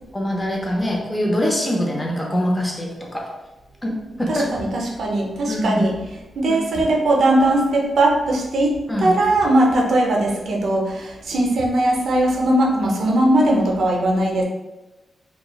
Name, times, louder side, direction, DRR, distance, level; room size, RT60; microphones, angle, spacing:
voice 1, 0.1-3.3 3.8-4.5 5.5-5.8 6.5-6.8 8.9-9.2, equal, 15° left, -1 dB, 0.5 m, -23 dB
voice 2, 4.3-5.9 6.4-14.4, right 1 dB, 75° right, -1 dB, 0.5 m, -19 dB
3.0 x 2.2 x 2.2 m, 1.0 s
cardioid pair, 105°, 0 cm